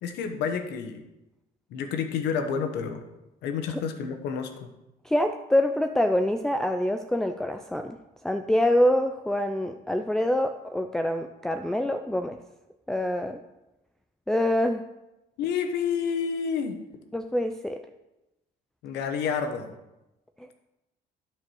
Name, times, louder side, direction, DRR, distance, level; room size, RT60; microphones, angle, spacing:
voice 1, 0.0-1.0 1.7-3.0 3.4-4.7 15.4-16.8 18.8-19.7, left 6 dB, 85° left, 6 dB, 1.2 m, -29 dB
voice 2, 5.1-8.0 8.2-12.4 12.9-13.4 14.3-14.8 17.1-17.8, left 1 dB, 5° left, 4 dB, 0.4 m, -25 dB
9.4 x 4.8 x 6.3 m, 0.96 s
cardioid pair, 110°, 17 cm